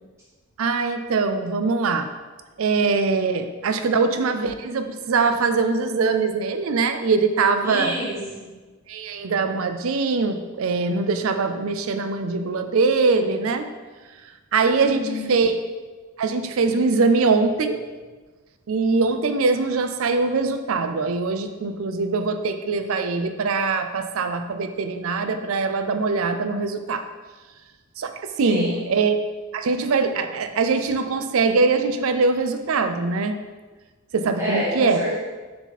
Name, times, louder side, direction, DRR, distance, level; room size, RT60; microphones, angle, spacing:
voice 1, 0.6-2.1 2.6-7.9 8.9-13.7 14.5-15.5 16.2-17.8 18.7-27.1 28.0-28.1 28.4-29.2 29.5-33.4 34.1-35.0, right 4 dB, 70° right, 8 dB, 0.4 m, -22 dB
voice 2, 7.6-8.5 14.8-15.3 28.4-28.9 34.4-35.2, equal, 15° right, -8 dB, 2.0 m, -28 dB
6.8 x 4.9 x 4.1 m, 1.3 s
head